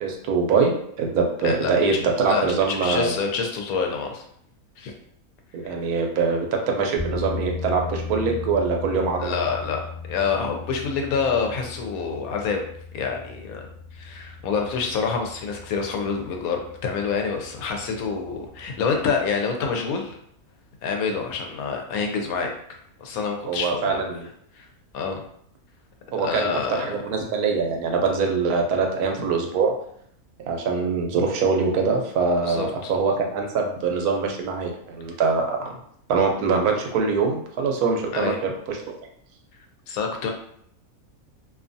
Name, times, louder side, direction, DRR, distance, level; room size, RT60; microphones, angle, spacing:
voice 1, 0.0-3.2 5.5-9.3 23.5-24.3 26.1-29.7 30.5-35.7 36.1-38.9, right 4 dB, 85° right, 2 dB, 1.1 m, -23 dB
voice 2, 2.3-4.2 4.8-4.9 9.2-12.6 12.9-13.7 13.9-20.2 20.8-22.5 23.0-24.0 24.6-24.7 24.9-25.2 26.2-26.9 32.4-32.9 38.1-38.4 39.9-40.3, left 5 dB, 75° left, 2 dB, 1.0 m, -27 dB
sound 1, 7.0-19.3, left 4 dB, 30° left, 1.0 m, -37 dB
2.6 x 2.3 x 2.5 m, 0.67 s
omnidirectional pair, 1.5 m